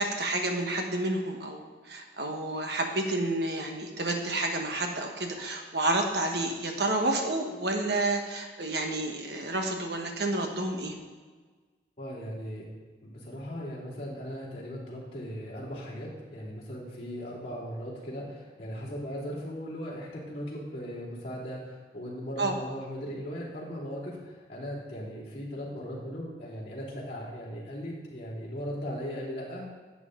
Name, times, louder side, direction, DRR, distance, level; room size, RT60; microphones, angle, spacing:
voice 1, 0.0-11.0 22.4-22.5, right 2 dB, 65° right, 3 dB, 1.3 m, -30 dB
voice 2, 12.0-12.7 13.0-29.7, equal, 35° left, -9 dB, 3.2 m, -38 dB
11.0 x 8.0 x 3.8 m, 1.4 s
head